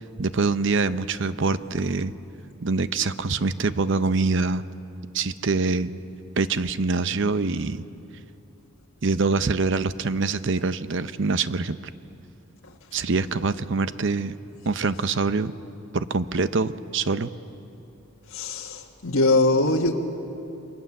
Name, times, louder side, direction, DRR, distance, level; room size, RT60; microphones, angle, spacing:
voice 1, 0.2-2.1 2.6-4.6 5.1-5.9 6.4-7.8 9.0-11.8 12.9-14.3 14.7-15.5 15.9-17.3, right 4 dB, 60° right, 12 dB, 0.7 m, -24 dB
voice 2, 18.3-19.9, left 2 dB, 80° left, 0 dB, 1.6 m, -22 dB
28.5 x 22.5 x 7.2 m, 2.9 s
head